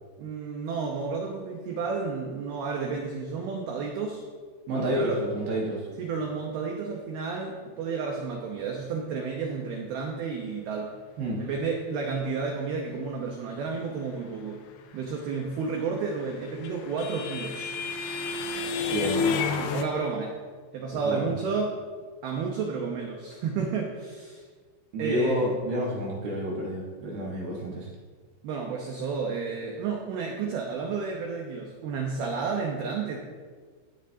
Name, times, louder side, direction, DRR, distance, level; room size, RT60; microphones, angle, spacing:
voice 1, 0.2-4.2 4.7-5.2 6.0-10.9 11.4-14.6 14.9-17.7 19.6-20.3 20.7-21.7 22.2-24.4 25.0-25.5 28.4-33.2, right 5 dB, 80° right, 1 dB, 2.2 m, -31 dB
voice 2, 4.7-5.8 11.2-11.4 18.9-19.4 21.0-21.3 24.9-27.9, equal, 65° right, -4 dB, 2.7 m, -29 dB
sound 1, 16.0-19.8, left 5 dB, 85° left, 2.4 m, -30 dB
15.0 x 10.0 x 2.8 m, 1.5 s
omnidirectional pair, 5.8 m